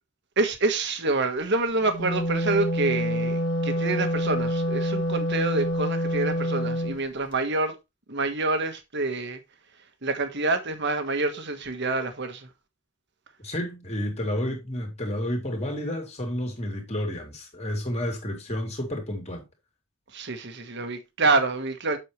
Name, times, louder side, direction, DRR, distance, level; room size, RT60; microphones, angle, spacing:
voice 1, 0.4-7.8 8.1-9.4 10.0-12.5 20.1-22.0, right 3 dB, 55° right, 1.5 m, -27 dB
Wind instrument woodwind instrument, 1.8-7.0, equal, 60° left, 1.6 m, -27 dB
voice 2, 13.4-19.4, left 1 dB, 30° left, 2.6 m, -30 dB
7.9 x 6.7 x 3.2 m
head